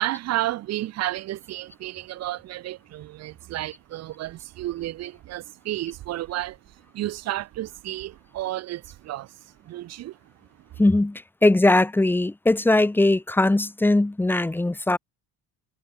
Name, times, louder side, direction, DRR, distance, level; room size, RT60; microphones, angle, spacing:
voice 1, 0.0-10.2, right 15 dB, 55° right, 5.6 m, -32 dB
voice 2, 10.8-15.0, left 2 dB, 5° left, 5.1 m, -20 dB
cardioid pair, 165°, 32 cm